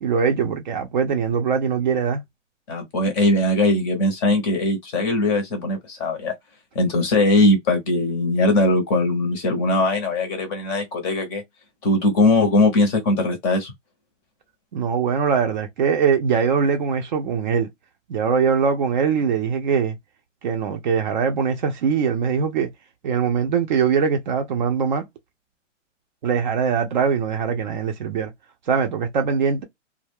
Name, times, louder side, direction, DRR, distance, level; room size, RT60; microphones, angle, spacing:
voice 1, 0.0-2.2 14.7-17.7 18.1-20.0 20.4-22.7 23.0-25.1 26.2-28.3 28.7-29.6, right 6 dB, 40° right, 0.5 m, -22 dB
voice 2, 2.7-6.3 6.7-11.4 11.8-13.7, left 2 dB, 20° left, 0.6 m, -20 dB
2.3 x 2.1 x 3.4 m
hypercardioid pair, 145°, 37 cm